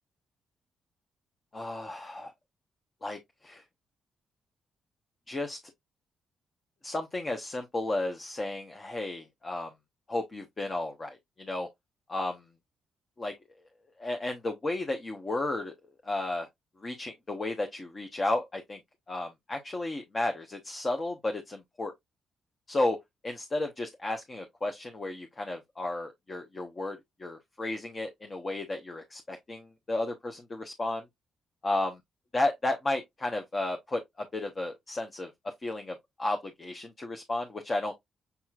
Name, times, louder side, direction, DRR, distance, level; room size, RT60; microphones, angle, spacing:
voice 1, 1.5-2.3 3.0-3.6 5.3-5.6 6.8-9.7 10.1-11.7 12.1-12.4 13.2-13.3 14.0-15.7 16.0-16.5 16.8-18.8 19.1-21.9 22.7-31.0 31.6-31.9 32.3-35.3 35.6-37.9, left 2 dB, 35° left, 0.9 m, -33 dB
6.8 x 3.0 x 2.4 m
supercardioid pair, 60°, 0 cm